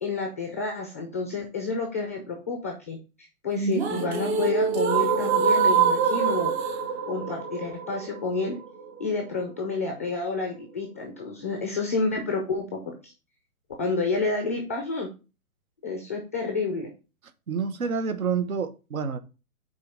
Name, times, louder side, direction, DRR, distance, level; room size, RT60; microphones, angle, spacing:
voice 1, 0.0-3.0 3.4-6.5 7.1-8.6 9.0-13.1 13.8-15.1 15.8-16.9, left 3 dB, 10° left, 0.4 m, -29 dB
sound 1, 3.6-9.6, right 6 dB, 45° right, 1.3 m, -25 dB
voice 2, 17.5-19.2, right 6 dB, 70° right, 1.1 m, -28 dB
5.5 x 4.1 x 5.2 m
hypercardioid pair, 135°, 43 cm